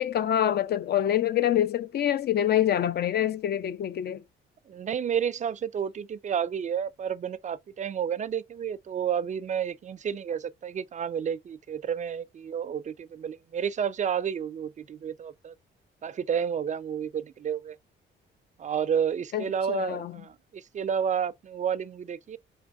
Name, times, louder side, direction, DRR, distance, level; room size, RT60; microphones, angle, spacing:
voice 1, 0.0-4.2 19.3-20.1, left 11 dB, 55° left, 0.4 m, -26 dB
voice 2, 4.7-15.5 16.0-17.8 18.6-22.4, right 8 dB, 40° right, 0.4 m, -31 dB
4.4 x 3.5 x 2.3 m
cardioid pair, 90°, 20 cm